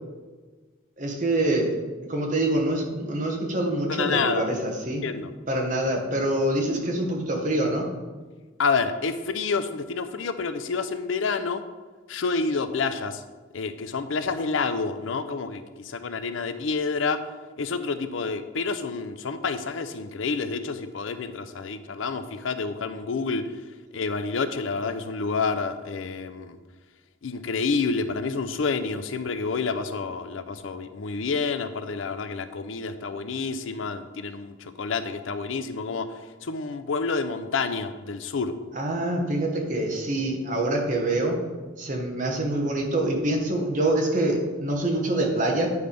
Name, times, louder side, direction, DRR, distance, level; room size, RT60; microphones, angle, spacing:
voice 1, 1.0-1.8 2.1-5.0 5.5-7.9 38.7-41.4 41.8-45.7, right 1 dB, 40° right, 1 dB, 1.1 m, -25 dB
voice 2, 3.9-4.5 5.0-5.3 8.6-11.6 12.1-13.2 13.5-17.2 17.6-23.5 23.9-26.6 27.2-36.1 36.4-38.5, left 4 dB, 90° left, 10 dB, 0.5 m, -28 dB
9.5 x 3.4 x 5.2 m, 1.3 s
head